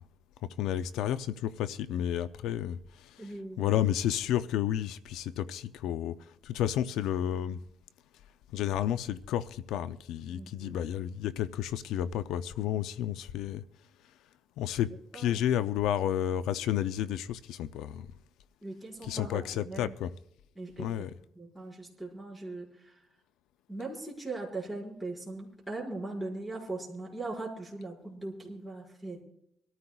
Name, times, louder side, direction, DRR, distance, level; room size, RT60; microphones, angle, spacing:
voice 1, 0.6-3.3 3.6-6.1 6.4-7.6 8.5-13.6 14.6-18.1 19.0-20.1 20.8-21.1, left 11 dB, 85° left, 0.4 m, -31 dB
voice 2, 3.2-3.8 10.3-10.8 15.1-15.4 18.6-19.9 20.5-20.9 21.3-22.9 23.7-29.2, right 2 dB, 5° right, 5.0 m, -40 dB
24.5 x 13.5 x 2.3 m
cardioid pair, 135°, 0 cm